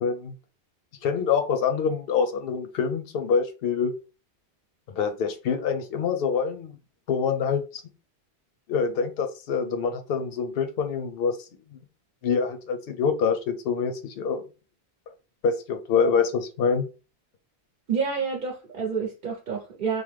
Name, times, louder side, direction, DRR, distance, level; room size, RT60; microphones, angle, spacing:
voice 1, 0.0-0.3 1.0-3.9 4.9-6.7 7.1-7.8 8.7-11.4 12.2-14.4 15.4-16.9, left 6 dB, 65° left, 0.7 m, -25 dB
voice 2, 17.9-20.0, right 6 dB, 55° right, 0.8 m, -28 dB
3.1 x 2.0 x 3.2 m
omnidirectional pair, 1.1 m